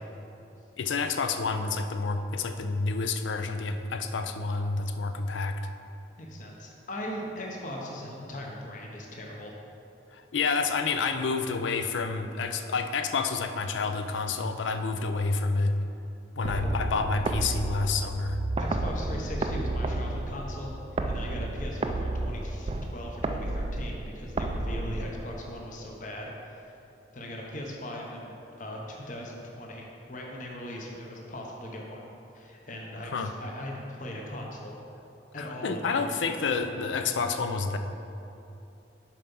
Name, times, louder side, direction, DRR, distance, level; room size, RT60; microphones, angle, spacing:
voice 1, 0.8-5.6 10.1-15.8 16.4-18.4 33.0-33.3 35.4-37.8, left 4 dB, 85° left, 8 dB, 0.5 m, -29 dB
voice 2, 6.2-9.5 16.6-16.7 18.6-26.7 27.1-32.1 32.3-34.8 35.3-36.1 36.4-36.5, left 1 dB, 45° left, -1 dB, 0.8 m, -39 dB
sound 1, 16.4-25.5, right 2 dB, 30° right, 0.3 m, -32 dB
7.4 x 4.5 x 5.4 m, 2.8 s
head